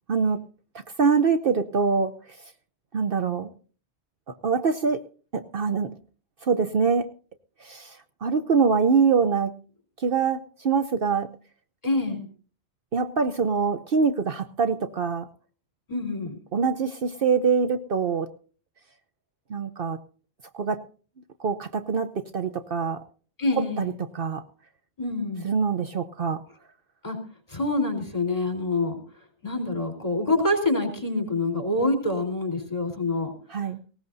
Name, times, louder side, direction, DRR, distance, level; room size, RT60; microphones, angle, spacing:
voice 1, 0.1-0.4 1.0-2.1 2.9-3.5 4.4-5.0 5.3-5.9 6.4-7.1 7.6-8.0 8.2-9.5 10.0-10.4 10.6-11.3 12.9-15.3 16.5-18.3 19.5-20.0 20.5-20.8 21.4-23.0 23.6-24.4 25.4-26.4 33.5-33.8, right 5 dB, 55° right, 10 dB, 1.0 m, -24 dB
voice 2, 11.8-12.3 15.9-16.4 23.4-23.9 25.0-25.4 27.0-27.2 27.5-29.0 29.4-33.3, left 2 dB, 35° left, 3 dB, 4.1 m, -26 dB
19.5 x 18.0 x 2.7 m, 0.39 s
omnidirectional pair, 1.1 m